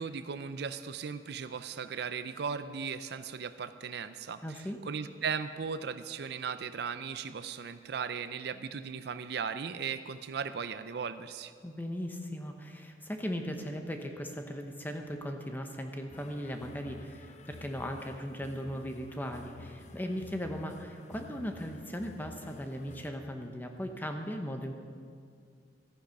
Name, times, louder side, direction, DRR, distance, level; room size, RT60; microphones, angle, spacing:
voice 1, 0.0-4.6 4.9-11.5, right 6 dB, 65° right, 12 dB, 0.5 m, -37 dB
voice 2, 4.4-4.8 11.6-24.7, equal, 10° left, 4 dB, 1.0 m, -38 dB
sound 1, 16.1-23.1, left 2 dB, 40° left, 0.6 m, -50 dB
14.0 x 10.0 x 5.2 m, 2.2 s
head